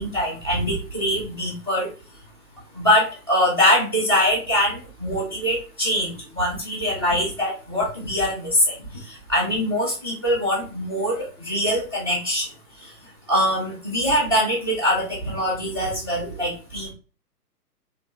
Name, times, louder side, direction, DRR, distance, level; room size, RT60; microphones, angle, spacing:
voice 1, 0.0-1.9 2.8-8.7 9.3-12.4 13.3-16.9, equal, 15° right, -3 dB, 0.4 m, -23 dB
3.1 x 2.2 x 2.5 m, 0.35 s
figure-of-eight pair, 120°, 48 cm